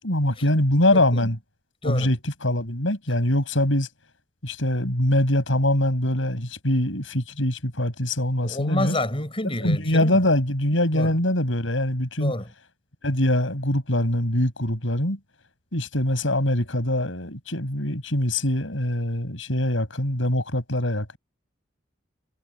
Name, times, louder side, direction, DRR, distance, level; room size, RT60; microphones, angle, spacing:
voice 1, 0.0-1.4 1.8-3.9 4.4-9.0 9.4-12.3 13.0-15.2 15.7-21.2, left 1 dB, 80° left, 7.1 m, -23 dB
voice 2, 0.9-1.3 1.8-2.1 8.4-10.2 10.9-11.1 12.2-12.5, left 1 dB, 30° left, 5.4 m, -28 dB
head